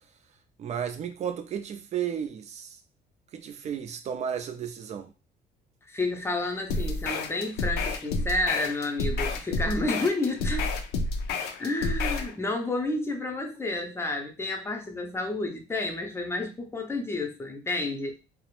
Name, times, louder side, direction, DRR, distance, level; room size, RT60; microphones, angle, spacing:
voice 1, 0.6-2.8 3.3-5.1, right 8 dB, 40° right, 0.4 m, -33 dB
voice 2, 5.9-10.7 11.6-18.1, left 2 dB, 15° left, 0.6 m, -30 dB
sound 1, 6.7-12.3, left 3 dB, 75° left, 0.4 m, -29 dB
2.4 x 2.0 x 3.0 m
cardioid pair, 110°, 17 cm